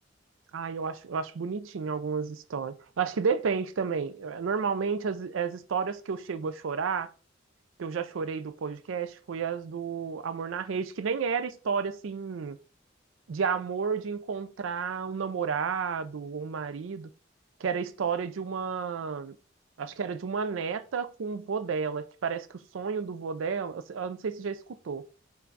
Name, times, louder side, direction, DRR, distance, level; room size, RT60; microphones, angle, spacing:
voice 1, 0.5-7.1 7.8-12.6 13.3-17.1 17.6-19.4 19.8-25.0, right 6 dB, 85° right, 0.4 m, -31 dB
5.7 x 2.3 x 3.9 m
head